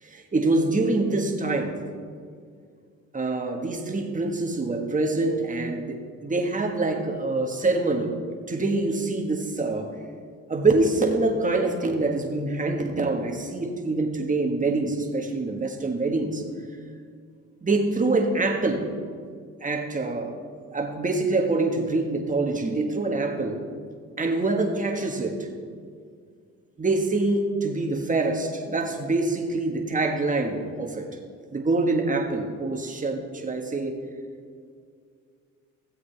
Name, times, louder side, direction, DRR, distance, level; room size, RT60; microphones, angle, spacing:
voice 1, 0.0-1.8 3.1-8.1 8.5-9.9 10.5-16.4 17.6-18.9 19.6-20.3 20.7-23.7 24.2-25.5 26.8-31.1 31.5-34.0, right 2 dB, 25° right, 2 dB, 1.5 m, -25 dB
16.5 x 7.8 x 3.4 m, 2.2 s
cardioid pair, 85°, 30 cm